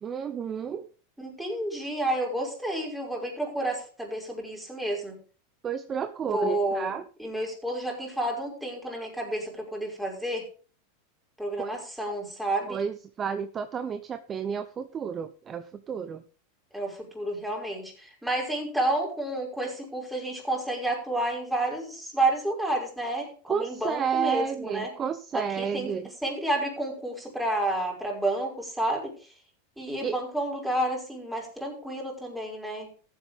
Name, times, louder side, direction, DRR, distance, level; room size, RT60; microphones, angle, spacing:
voice 1, 0.0-0.9 5.6-7.0 11.6-11.8 12.7-16.2 23.5-26.1 30.0-30.2, right 7 dB, 30° right, 10 dB, 0.8 m, -31 dB
voice 2, 1.2-5.2 6.2-6.9 7.2-10.5 11.4-12.8 16.7-24.9 25.3-25.9 26.2-29.1 29.8-32.9, right 1 dB, 5° right, -1 dB, 5.5 m, -30 dB
15.0 x 8.3 x 3.6 m, 0.39 s
hypercardioid pair, 110°, 0 cm